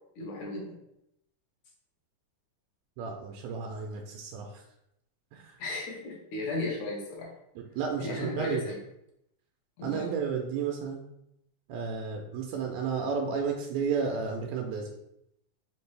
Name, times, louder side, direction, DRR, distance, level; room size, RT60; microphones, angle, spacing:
voice 1, 0.2-0.8 5.6-7.3 8.0-8.8 9.8-10.1, left 2 dB, 70° left, -2 dB, 2.2 m, -35 dB
voice 2, 3.0-4.6 5.3-5.6 7.6-8.6 9.8-11.0 11.7-14.9, right 6 dB, 85° right, 1 dB, 1.6 m, -32 dB
5.2 x 2.6 x 3.2 m, 0.80 s
omnidirectional pair, 3.6 m